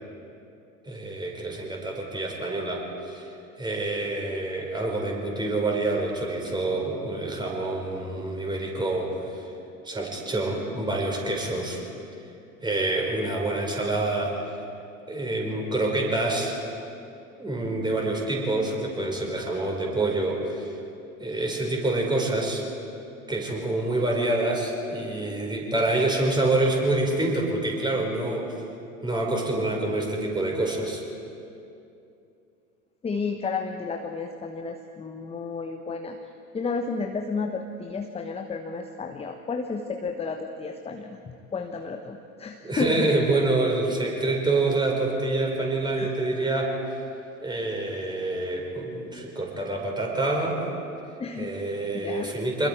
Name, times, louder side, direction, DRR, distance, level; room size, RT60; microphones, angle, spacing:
voice 1, 0.9-3.3 3.6-9.5 9.8-11.8 12.6-14.4 15.1-16.5 17.4-20.7 21.2-22.6 23.3-28.5 29.0-31.0 42.6-46.8 47.4-50.6 51.4-52.7, right 2 dB, 10° right, 0 dB, 5.3 m, -27 dB
voice 2, 33.0-36.2 36.5-43.1 46.0-46.1 51.2-51.5 51.9-52.3, left 4 dB, 15° left, 5 dB, 1.1 m, -32 dB
27.5 x 21.5 x 4.8 m, 2.6 s
figure-of-eight pair, 75°, 41 cm